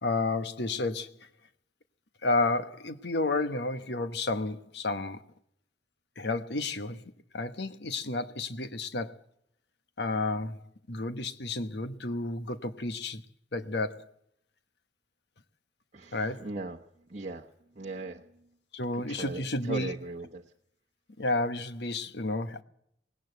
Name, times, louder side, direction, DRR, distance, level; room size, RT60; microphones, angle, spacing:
voice 1, 0.0-1.1 2.2-5.2 6.2-7.0 7.3-9.2 10.0-10.6 10.9-13.2 13.5-14.1 16.1-16.5 18.7-19.9 21.2-22.6, left 2 dB, 70° left, 1.2 m, -31 dB
voice 2, 15.9-16.8 17.1-17.5 17.7-18.3 18.9-20.4, right 2 dB, 40° right, 1.2 m, -38 dB
19.5 x 18.0 x 8.0 m
head